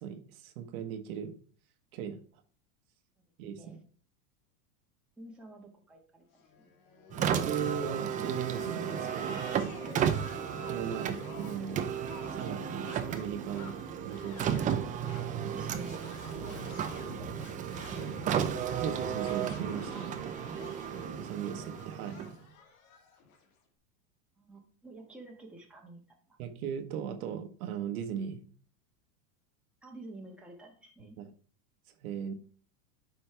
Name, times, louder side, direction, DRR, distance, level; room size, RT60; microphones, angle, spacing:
voice 1, 0.0-1.3 1.9-2.2 3.4-3.8 7.2-9.5 10.7-11.8 12.3-13.8 14.1-14.6 18.7-20.1 21.2-22.2 26.4-28.4 31.2-31.3 32.0-32.3, right 8 dB, 70° right, 7 dB, 1.3 m, -37 dB
voice 2, 5.2-6.2 6.6-6.7 15.3-17.7 19.9-20.2 24.4-26.4 29.8-31.2, right 2 dB, ahead, -1 dB, 1.4 m, -50 dB
sound 1, 6.4-23.4, left 5 dB, 65° left, 2.1 m, -49 dB
Car, 7.1-22.5, right 8 dB, 20° right, 0.5 m, -34 dB
sound 2, 16.0-16.8 17.7-18.4 18.9-19.8, right 2 dB, 40° right, 1.4 m, -50 dB
9.0 x 5.3 x 3.4 m, 0.43 s
supercardioid pair, 140°, 45 cm